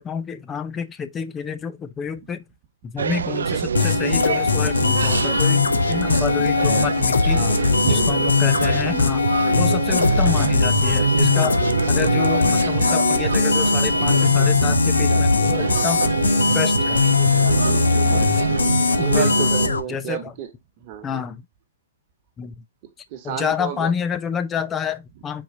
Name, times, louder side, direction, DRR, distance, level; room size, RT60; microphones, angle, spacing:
voice 1, 0.0-2.4 2.8-7.5 7.8-9.3 9.6-11.6 11.9-16.0 16.5-17.0 19.0-19.5 19.9-20.3 21.0-21.4 22.4-22.5 23.2-25.4, left 7 dB, 20° left, 0.5 m, -28 dB
sound 1, 3.0-19.7, right 6 dB, 80° right, 0.3 m, -25 dB
sound 2, 3.7-19.8, left 4 dB, 85° left, 0.7 m, -20 dB
voice 2, 7.2-8.4 9.4-9.8 17.5-18.5 19.0-20.5 20.8-21.3 23.1-23.9, right 8 dB, 40° right, 1.3 m, -33 dB
4.6 x 2.8 x 3.7 m
hypercardioid pair, 125°, 0 cm